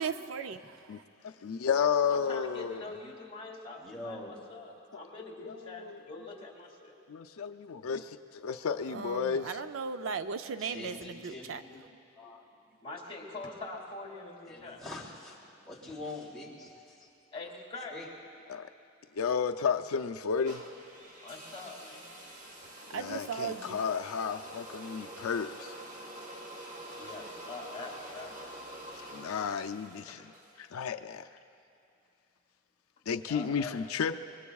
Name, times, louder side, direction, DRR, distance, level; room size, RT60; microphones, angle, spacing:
voice 1, 0.0-0.6 8.9-11.6 22.9-23.8, right 5 dB, 65° right, 10 dB, 0.4 m, -36 dB
voice 2, 1.2-2.8 5.4-6.0 7.1-9.6 18.5-18.7 19.2-20.6 22.9-25.7 28.9-30.2 30.6-31.3 33.1-34.2, left 6 dB, 80° left, 7 dB, 0.4 m, -32 dB
voice 3, 2.1-6.9 12.8-14.8 17.3-18.0 21.2-22.2 27.0-28.4 30.1-30.3 33.2-33.7, left 3 dB, 25° left, -1 dB, 2.2 m, -44 dB
voice 4, 3.8-4.3 10.6-11.8 12.2-12.4 14.5-17.1 17.9-18.1, left 2 dB, ahead, -8 dB, 3.0 m, -44 dB
sound 1, 20.5-30.6, right 1 dB, 35° right, 1.5 m, -47 dB
25.5 x 22.5 x 2.3 m, 2.7 s
head